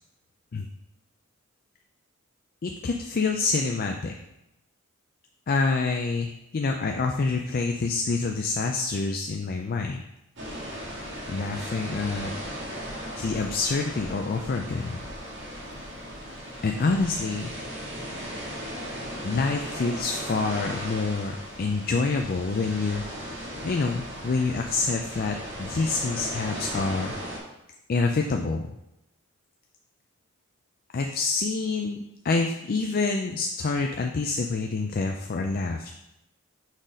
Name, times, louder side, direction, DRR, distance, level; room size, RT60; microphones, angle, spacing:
voice 1, 2.6-4.1 5.5-10.0 11.3-12.3 13.2-15.0 16.6-17.5 19.2-23.0 23.6-27.1 27.9-28.7 30.9-35.9, left 3 dB, 45° left, 3 dB, 0.4 m, -27 dB
sound 1, 10.4-27.4, equal, 60° right, 2.0 m, -37 dB
sound 2, 22.2-27.2, right 1 dB, 20° right, 0.7 m, -47 dB
6.3 x 4.0 x 5.0 m, 0.87 s
head